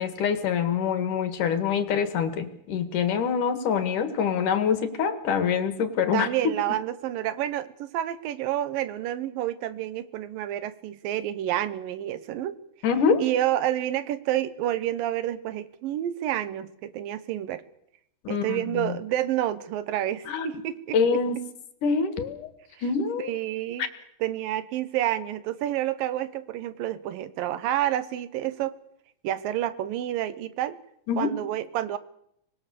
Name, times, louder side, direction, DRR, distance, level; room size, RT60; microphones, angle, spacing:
voice 1, 0.0-6.3 12.8-13.2 18.2-18.9 20.3-20.6 20.9-21.4 21.8-22.5 22.8-23.3 23.8-23.9 31.1-31.3, left 6 dB, 70° left, 10 dB, 3.1 m, -25 dB
voice 2, 6.1-12.6 13.2-17.6 18.3-21.0 23.2-23.9 24.2-28.8 29.2-30.8 31.2-32.0, right 12 dB, 80° right, 15 dB, 2.7 m, -29 dB
25.0 x 20.5 x 6.9 m, 0.76 s
omnidirectional pair, 4.0 m